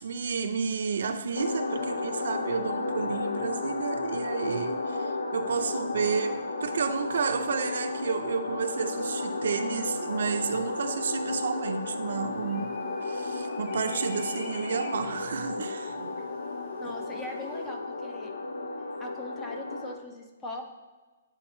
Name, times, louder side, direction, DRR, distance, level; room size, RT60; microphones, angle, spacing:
voice 1, 0.0-16.1, right 5 dB, 65° right, 8 dB, 0.5 m, -31 dB
sound 1, 1.4-19.9, left 3 dB, 75° left, 0.7 m, -33 dB
sound 2, 12.1-17.7, left 2 dB, 30° left, 1.2 m, -50 dB
voice 2, 16.8-18.3 19.0-20.6, left 2 dB, 10° left, 4 dB, 0.4 m, -40 dB
8.8 x 3.8 x 3.0 m, 1.3 s
hypercardioid pair, 170°, 0 cm